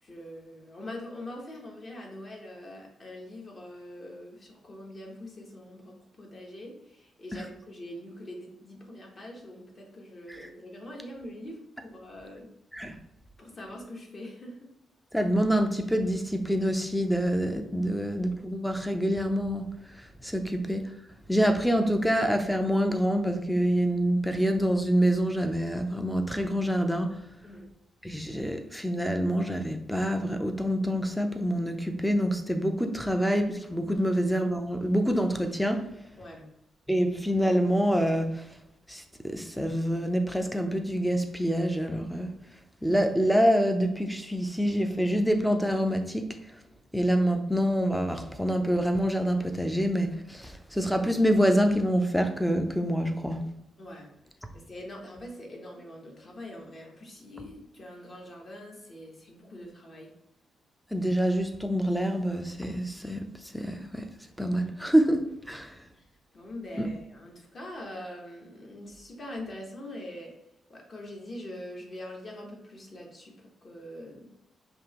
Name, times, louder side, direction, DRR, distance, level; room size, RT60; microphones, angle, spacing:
voice 1, 0.0-12.5 13.4-14.7 17.8-18.1 27.4-27.7 33.9-34.2 36.2-36.5 53.8-54.1 54.5-60.1 65.5-65.6 65.9-66.1 66.3-70.3 70.7-74.3, left 1 dB, 35° left, 0 dB, 1.0 m, -43 dB
voice 2, 15.1-19.7 20.2-20.9 21.3-27.2 28.0-35.9 36.9-38.5 38.9-42.3 42.8-46.4 46.9-53.5 60.9-63.2 63.5-64.1 64.4-65.7 66.8-66.9, equal, ahead, 5 dB, 0.4 m, -26 dB
5.2 x 2.8 x 3.0 m, 0.83 s
cardioid pair, 145°, 0 cm